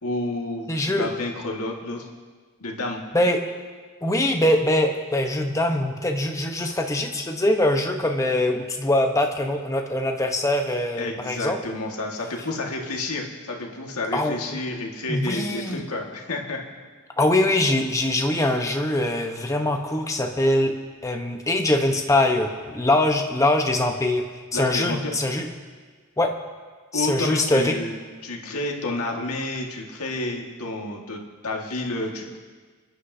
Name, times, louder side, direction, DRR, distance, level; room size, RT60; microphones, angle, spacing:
voice 1, 0.0-2.1 2.6-3.0 11.0-16.6 24.5-25.1 26.9-28.0 28.2-32.4, left 2 dB, 80° left, 0 dB, 1.8 m, -30 dB
voice 2, 0.7-1.1 3.1-3.4 4.0-11.6 14.1-14.6 15.1-15.8 17.2-20.7 21.0-24.2 24.5-25.5 26.2-26.3 26.9-27.8, left 1 dB, 15° left, 3 dB, 0.9 m, -23 dB
30.0 x 9.9 x 2.8 m, 1.5 s
head